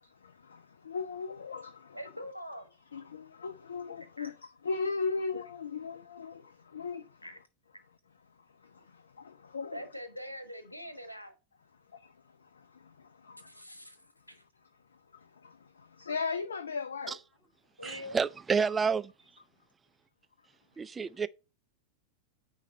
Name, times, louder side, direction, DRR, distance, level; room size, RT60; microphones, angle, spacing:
voice 1, 0.0-2.0 2.9-7.3 8.5-9.8 11.9-13.7 14.9-17.2, left 4 dB, 70° left, 0.4 m, -38 dB
voice 2, 1.9-2.7 4.2-4.3 7.2-7.4 9.7-11.3 13.5-14.0 14.3-14.4 17.8-18.2, equal, 85° left, 1.1 m, -43 dB
voice 3, 17.8-19.1 20.8-21.3, right 5 dB, 15° right, 0.3 m, -29 dB
9.2 x 3.2 x 5.3 m
figure-of-eight pair, 90°, 0 cm